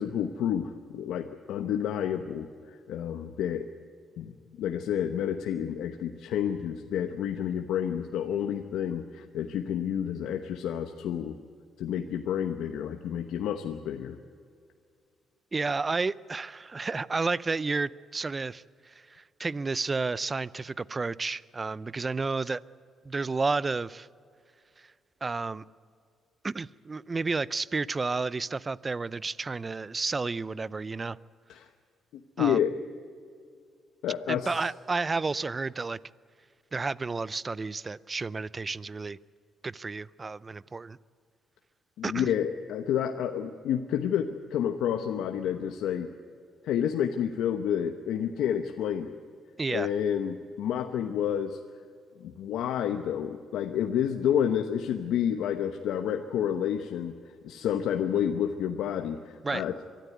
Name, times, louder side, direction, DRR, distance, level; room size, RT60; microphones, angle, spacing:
voice 1, 0.0-3.7 4.2-4.3 4.6-11.4 11.8-14.2 31.5-31.7 32.1-32.7 34.0-34.5 42.0-46.1 46.6-49.2 49.7-51.6 52.2-59.7, left 9 dB, 85° left, 6 dB, 0.9 m, -29 dB
voice 2, 15.5-18.6 19.1-22.6 23.0-24.1 25.2-25.6 26.4-31.2 32.4-32.6 34.3-36.0 36.7-39.2 39.6-41.0 42.0-42.3 49.6-49.9 59.4-59.6, right 4 dB, 30° right, 20 dB, 0.5 m, -31 dB
23.5 x 13.0 x 9.5 m, 2.3 s
cardioid pair, 90°, 0 cm